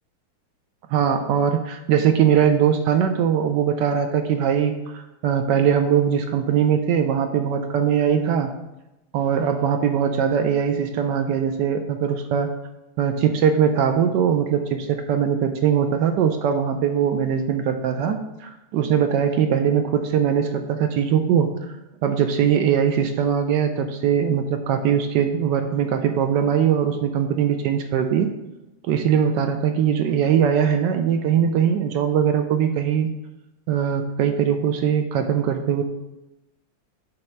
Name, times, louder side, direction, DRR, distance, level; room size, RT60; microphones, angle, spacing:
voice 1, 0.9-8.5 9.1-12.5 13.0-21.5 22.0-28.3 28.9-33.1 33.7-35.8, right 8 dB, 75° right, 7 dB, 1.0 m, -21 dB
8.4 x 3.3 x 5.7 m, 0.95 s
omnidirectional pair, 2.3 m